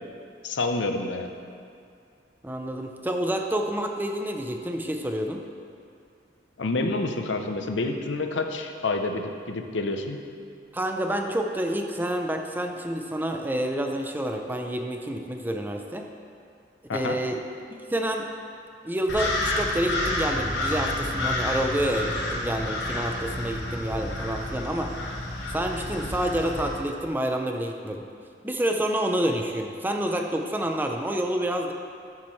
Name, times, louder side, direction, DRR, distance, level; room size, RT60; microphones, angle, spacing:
voice 1, 0.4-1.3 6.6-10.2 16.9-17.2, left 2 dB, 80° left, 5 dB, 0.7 m, -28 dB
voice 2, 2.4-5.4 10.7-16.0 16.9-17.4 17.7-18.3 18.8-24.9 25.5-28.1 28.4-31.7, right 1 dB, 10° right, 3 dB, 0.5 m, -28 dB
sound 1, 19.1-26.8, left 1 dB, 65° left, 1.2 m, -30 dB
13.0 x 7.4 x 3.2 m, 2.4 s
head